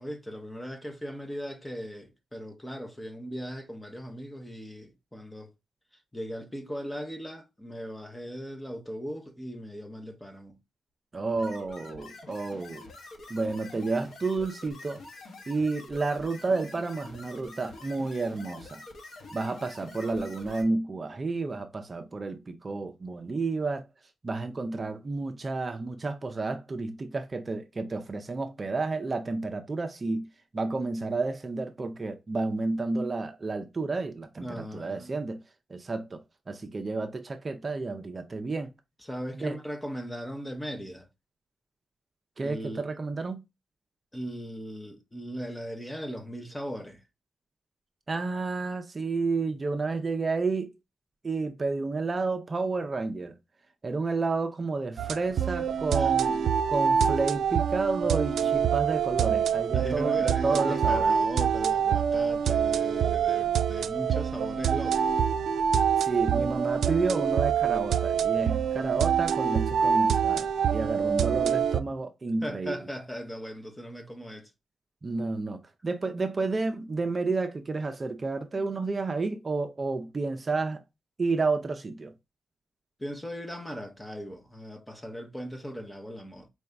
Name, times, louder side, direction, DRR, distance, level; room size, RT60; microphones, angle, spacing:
voice 1, 0.0-5.5 6.1-10.6 34.4-35.2 39.0-41.1 42.4-42.9 44.1-47.0 56.0-56.1 58.3-58.5 59.7-65.2 72.4-74.5 83.0-86.5, equal, 10° left, 0.8 m, -38 dB
voice 2, 11.1-12.9 13.3-15.0 15.5-18.8 19.3-23.9 24.2-30.3 30.5-35.4 35.7-36.2 36.5-38.7 39.4-39.6 42.4-43.4 48.1-50.7 51.2-53.3 53.8-56.4 56.7-61.1 66.0-72.8 75.0-80.8 81.2-82.1, right 3 dB, 30° right, 0.6 m, -31 dB
sound 1, 11.3-20.6, left 2 dB, 65° left, 1.2 m, -46 dB
sound 2, 55.0-71.8, right 7 dB, 85° right, 0.4 m, -25 dB
4.6 x 2.7 x 3.3 m
wide cardioid pair, 120°, 0 cm